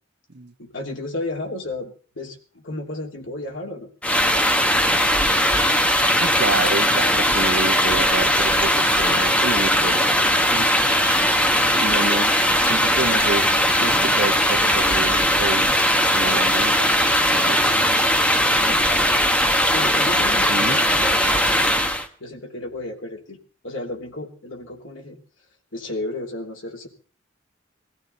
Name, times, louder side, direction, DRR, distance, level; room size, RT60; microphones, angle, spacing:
voice 1, 0.6-3.9 11.5-12.0 18.4-18.9 19.7-21.9 22.2-23.4 23.6-25.2 25.7-26.9, left 2 dB, 75° left, 2 dB, 3.0 m, -33 dB
sound 1, 4.0-22.1, equal, 5° left, 1.2 m, -19 dB
voice 2, 6.2-10.7 11.8-13.5 13.8-15.7 16.0-16.9 17.2-17.6 20.5-20.8, right 3 dB, 60° right, 5 dB, 1.2 m, -29 dB
22.0 x 14.5 x 4.0 m, 0.41 s
head